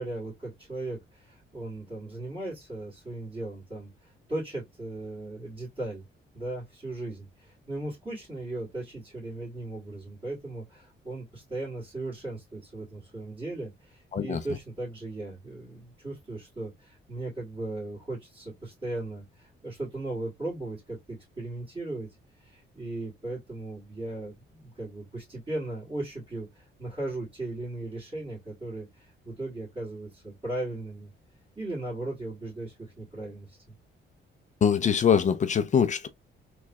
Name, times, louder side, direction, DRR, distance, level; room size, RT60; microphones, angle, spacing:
voice 1, 0.0-6.0 6.3-22.1 22.4-31.1 31.6-33.7, right 2 dB, 25° right, 2.2 m, -37 dB
voice 2, 34.6-36.1, left 7 dB, 40° left, 0.4 m, -23 dB
3.6 x 3.1 x 2.2 m
cardioid pair, 135°, 20 cm